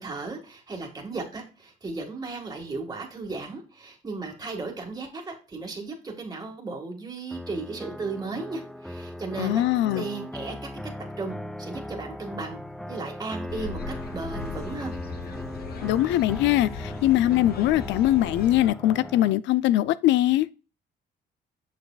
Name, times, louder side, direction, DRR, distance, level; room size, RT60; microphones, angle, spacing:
voice 1, 0.0-9.6 10.0-10.7 11.2-12.6 12.9-14.9, right 3 dB, 20° right, 1.8 m, -35 dB
sound 1, 7.3-19.3, equal, ahead, 0.4 m, -38 dB
voice 2, 9.4-10.1 15.8-20.5, left 14 dB, 90° left, 0.4 m, -22 dB
sound 2, 13.5-18.7, left 4 dB, 60° left, 1.1 m, -38 dB
6.8 x 6.4 x 2.4 m
cardioid pair, 110°, 18 cm